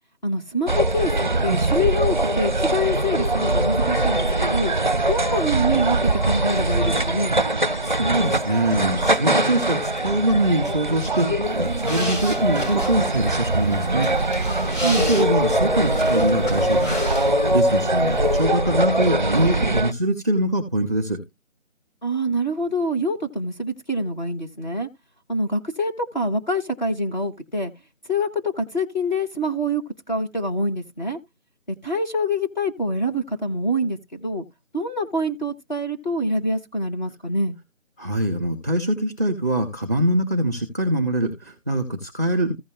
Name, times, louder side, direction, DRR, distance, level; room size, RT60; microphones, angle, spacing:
voice 1, 0.2-1.1 1.4-4.7 5.1-7.4 14.8-15.1 22.0-24.9 25.3-27.7 28.1-29.8 30.1-31.2 31.7-34.4 34.7-37.6, equal, 35° left, 1.1 m, -25 dB
sound 1, 0.7-19.9, right 1 dB, 40° right, 0.6 m, -22 dB
voice 2, 7.8-14.1 15.1-17.0 17.3-21.2 38.0-42.5, right 1 dB, 15° left, 1.2 m, -23 dB
sound 2, 11.5-17.7 17.9-18.4, equal, 75° left, 4.4 m, -34 dB
15.5 x 5.4 x 2.4 m
figure-of-eight pair, 170°, 38 cm